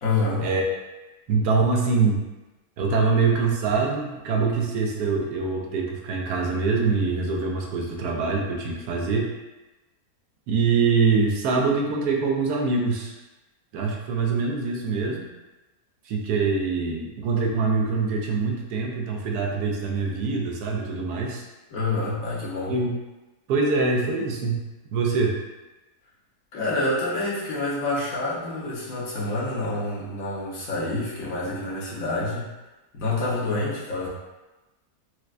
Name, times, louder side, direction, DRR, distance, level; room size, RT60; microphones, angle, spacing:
voice 1, 0.0-0.4 21.7-22.7 26.5-32.5 32.9-34.1, left 2 dB, 65° left, -7 dB, 1.2 m, -27 dB
voice 2, 1.3-2.2 2.8-9.3 10.5-13.1 13.7-15.3 16.1-21.4 22.7-22.9 23.5-24.6 24.9-25.4, right 4 dB, 85° right, 0 dB, 1.1 m, -24 dB
4.4 x 2.1 x 2.4 m, 1.1 s
omnidirectional pair, 1.7 m